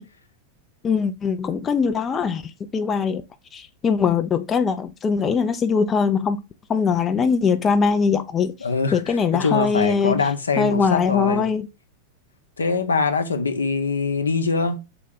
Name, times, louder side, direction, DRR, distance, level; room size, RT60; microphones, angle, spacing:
voice 1, 0.8-3.2 3.5-6.4 6.7-8.5 8.9-10.2 10.6-11.7, left 5 dB, 20° left, 0.4 m, -21 dB
voice 2, 8.6-11.4 12.6-14.8, left 4 dB, 75° left, 0.7 m, -23 dB
3.8 x 3.6 x 3.6 m
figure-of-eight pair, 90°, 0 cm